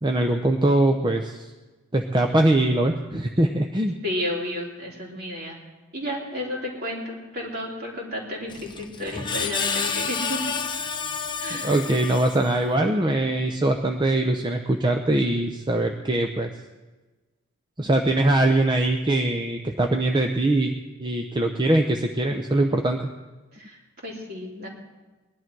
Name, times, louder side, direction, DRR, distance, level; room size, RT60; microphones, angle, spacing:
voice 1, 0.0-1.5 1.9-3.9 11.6-16.5 17.8-20.7 21.0-23.1, right 1 dB, 20° right, 4 dB, 0.6 m, -22 dB
voice 2, 4.0-5.6 5.9-10.4 11.4-11.8 23.5-24.7, left 1 dB, 45° right, -3 dB, 3.4 m, -32 dB
Screech, 8.5-12.8, left 6 dB, 20° left, 0.6 m, -30 dB
20.0 x 11.5 x 4.6 m, 1.2 s
head